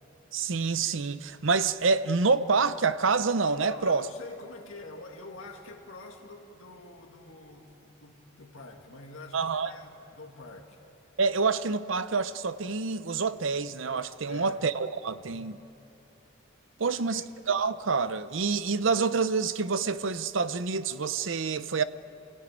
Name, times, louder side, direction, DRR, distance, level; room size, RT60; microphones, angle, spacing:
voice 1, 0.3-4.1 9.3-9.7 11.2-15.6 16.8-21.8, right 4 dB, 70° right, 0.7 m, -27 dB
voice 2, 3.6-10.8 14.2-14.6 15.2-15.5 16.8-17.3, left 2 dB, 75° left, 2.3 m, -46 dB
27.0 x 17.5 x 9.1 m
head